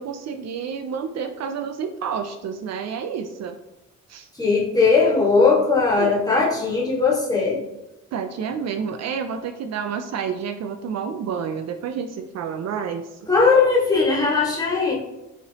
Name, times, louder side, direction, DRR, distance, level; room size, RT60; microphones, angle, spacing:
voice 1, 0.0-3.6 4.1-4.3 6.0-6.1 8.1-13.3, right 6 dB, 60° right, 6 dB, 0.5 m, -29 dB
voice 2, 4.4-7.6 13.3-14.9, left 4 dB, 10° left, -5 dB, 1.6 m, -19 dB
5.7 x 3.0 x 2.8 m, 0.97 s
cardioid pair, 90°, 30 cm